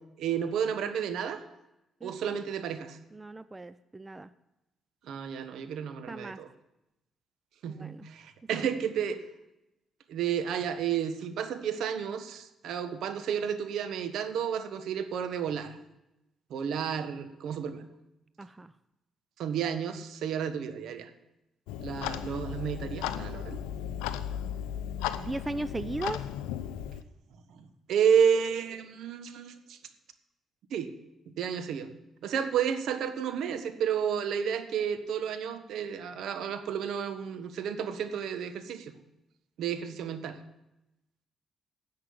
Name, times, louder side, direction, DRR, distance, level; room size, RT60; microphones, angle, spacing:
voice 1, 0.2-1.4 2.0-3.0 5.1-6.5 7.6-9.2 10.1-15.8 16.5-17.8 19.4-21.1 21.8-23.6 27.6-29.8 30.7-30.9 31.3-31.9 32.2-38.9 39.6-40.4, right 7 dB, 70° right, 9 dB, 1.3 m, -31 dB
voice 2, 2.0-2.4 3.1-4.3 6.1-6.4 7.7-8.1 18.4-18.7 25.2-26.2, right 2 dB, 25° right, 14 dB, 0.6 m, -37 dB
Clock, 21.7-27.0, left 10 dB, 85° left, 0.6 m, -35 dB
10.5 x 7.6 x 9.5 m, 0.92 s
hypercardioid pair, 45°, 0 cm